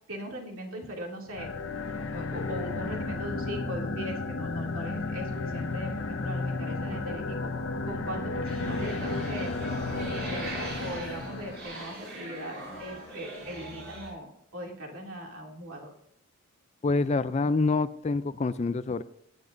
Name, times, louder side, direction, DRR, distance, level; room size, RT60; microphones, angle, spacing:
voice 1, 0.1-1.5 2.1-7.5 7.8-9.5 9.9-14.3 14.5-15.9, equal, 70° right, 0 dB, 2.6 m, -39 dB
sound 1, 1.3-11.8, left 3 dB, 60° left, 0.8 m, -33 dB
sound 2, 8.4-14.1, right 1 dB, 45° right, 5.6 m, -40 dB
voice 2, 16.8-19.0, left 3 dB, 30° left, 14 dB, 0.3 m, -26 dB
17.5 x 9.8 x 2.6 m, 0.73 s
head